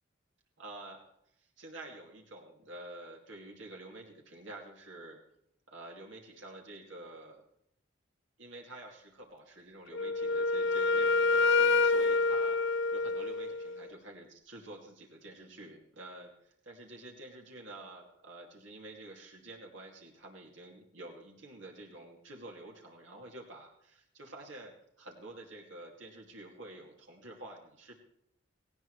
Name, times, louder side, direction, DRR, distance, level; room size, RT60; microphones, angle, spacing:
voice 1, 0.6-1.0 1.4-5.2 5.7-7.4 8.4-12.6 12.9-27.9, right 2 dB, 70° right, 0 dB, 2.4 m, -49 dB
Wind instrument woodwind instrument, 9.9-13.8, left 3 dB, 65° left, 0.4 m, -27 dB
17.5 x 17.5 x 3.2 m, 0.76 s
head